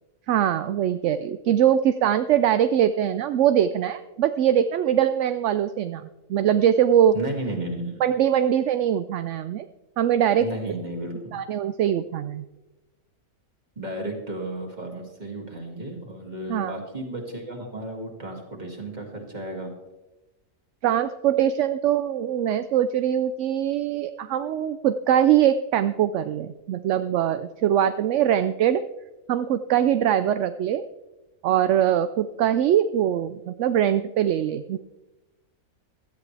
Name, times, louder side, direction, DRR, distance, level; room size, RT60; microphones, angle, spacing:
voice 1, 0.3-7.1 8.0-9.7 10.0-10.4 11.3-12.5 16.5-16.7 20.8-28.8 29.3-30.8 31.4-34.8, right 10 dB, 65° right, 11 dB, 0.8 m, -22 dB
voice 2, 7.1-8.0 10.4-11.4 13.8-19.7, right 1 dB, 30° right, 1 dB, 2.6 m, -33 dB
17.0 x 13.0 x 3.3 m, 1.1 s
omnidirectional pair, 1.5 m